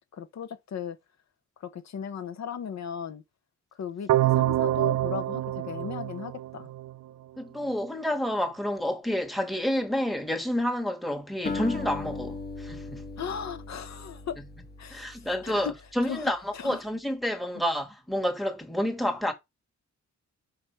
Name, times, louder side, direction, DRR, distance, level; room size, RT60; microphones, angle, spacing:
voice 1, 0.1-1.0 1.6-3.2 3.8-6.7 13.2-14.4 14.8-15.7 16.0-16.8, left 7 dB, 65° left, 0.9 m, -37 dB
sound 1, 4.1-7.1, right 14 dB, 75° right, 0.5 m, -26 dB
voice 2, 7.4-13.0 14.4-14.5 14.9-19.3, equal, ahead, 1.3 m, -29 dB
Acoustic guitar, 11.5-15.9, left 3 dB, 35° left, 1.1 m, -38 dB
5.9 x 5.1 x 4.5 m
wide cardioid pair, 170°, 29 cm